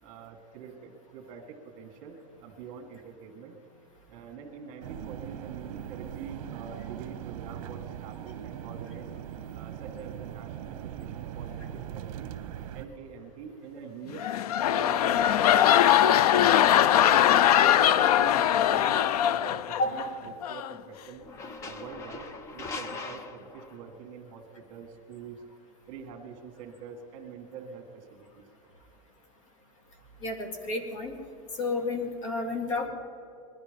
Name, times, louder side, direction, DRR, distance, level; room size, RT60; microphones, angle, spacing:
voice 1, 0.0-3.6 4.1-9.1 9.5-12.3 12.7-14.3 14.7-15.2 15.6-16.2 16.6-19.0 19.3-21.2 21.6-22.3 22.5-25.4 25.9-28.4, right 6 dB, 40° right, 4 dB, 2.0 m, -45 dB
sound 1, 4.8-12.9, right 10 dB, 60° right, 0.9 m, -40 dB
sound 2, 14.1-20.1 20.4-20.7, left 11 dB, 90° left, 0.5 m, -21 dB
sound 3, 21.2-24.0, left 3 dB, 15° left, 0.5 m, -41 dB
voice 2, 30.2-31.1 31.6-32.9, left 2 dB, 55° left, 5 dB, 2.4 m, -30 dB
20.0 x 12.0 x 5.3 m, 2.7 s
supercardioid pair, 170°, 19 cm